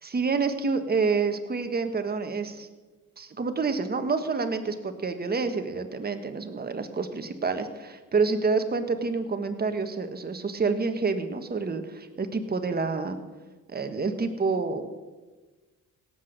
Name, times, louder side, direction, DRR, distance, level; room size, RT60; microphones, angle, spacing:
voice 1, 0.0-2.7 3.2-13.2 13.7-15.0, right 4 dB, 30° right, 7 dB, 1.4 m, -28 dB
17.0 x 8.1 x 6.6 m, 1.3 s
cardioid pair, 90°, 30 cm